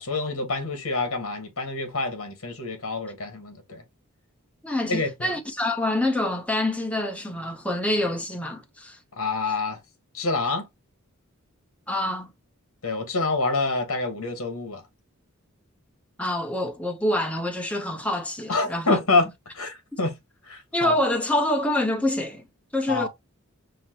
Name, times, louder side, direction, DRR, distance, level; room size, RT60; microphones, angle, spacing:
voice 1, 0.0-3.8 4.9-5.3 9.2-9.8 10.1-10.7 12.8-14.8 18.5-19.3 19.5-20.1 20.4-20.9 22.9-23.1, left 3 dB, 70° left, 1.3 m, -27 dB
voice 2, 4.6-9.0 11.9-12.3 16.2-19.0 20.7-22.4 22.7-23.1, left 1 dB, 5° left, 0.7 m, -26 dB
5.7 x 2.1 x 2.8 m
head